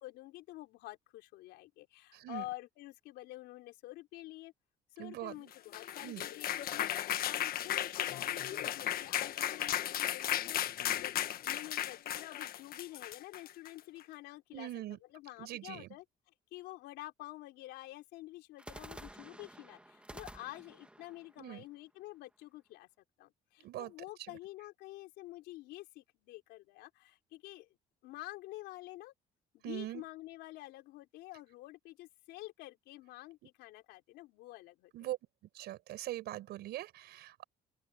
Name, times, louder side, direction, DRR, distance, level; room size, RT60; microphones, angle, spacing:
voice 1, 0.0-4.5 5.0-14.7 15.1-16.0 16.5-22.9 23.2-27.7 28.0-29.1 29.5-35.1, left 18 dB, 90° left, 4.1 m, -49 dB
voice 2, 2.1-2.5 5.0-5.5 6.0-6.3 14.5-15.0 15.4-15.9 21.4-21.6 23.6-23.9 24.2-24.4 29.6-30.0 34.9-35.2 35.5-37.4, right 14 dB, 75° right, 5.5 m, -42 dB
sound 1, 5.5-13.8, left 11 dB, 60° left, 1.4 m, -35 dB
sound 2, 10.4-11.8 18.6-22.5, right 1 dB, 5° right, 2.1 m, -53 dB
open air
cardioid pair, 110°, 17 cm